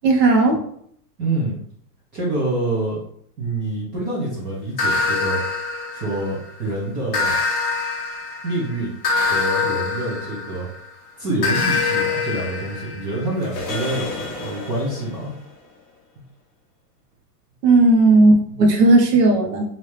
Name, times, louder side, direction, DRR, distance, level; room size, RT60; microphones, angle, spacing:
voice 1, 0.0-0.6 17.6-19.6, right 2 dB, 75° right, 2 dB, 1.2 m, -15 dB
voice 2, 1.2-1.6 2.1-3.0 3.4-5.4 5.9-7.3 8.4-8.9 9.2-10.7 11.2-15.3 16.2-16.3 18.5-18.6, right 2 dB, 20° right, -5 dB, 0.6 m, -26 dB
sound 1, 4.8-6.5 7.1-10.8 11.4-15.1, left 4 dB, 20° left, 0.7 m, -25 dB
3.3 x 2.7 x 3.1 m, 0.65 s
hypercardioid pair, 145°, 48 cm